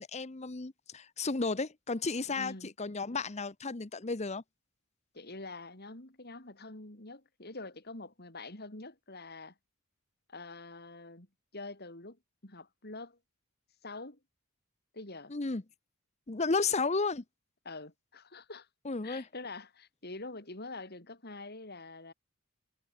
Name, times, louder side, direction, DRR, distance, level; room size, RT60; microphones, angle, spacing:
voice 1, 0.0-4.4 15.3-15.6 16.3-17.2 18.8-19.2, left 4 dB, 30° left, 0.8 m, -33 dB
voice 2, 2.3-2.7 5.1-9.5 10.3-11.3 11.5-12.2 12.4-13.2 13.8-14.2 14.9-15.3 17.7-18.7 19.0-22.1, left 2 dB, 45° left, 3.7 m, -45 dB
head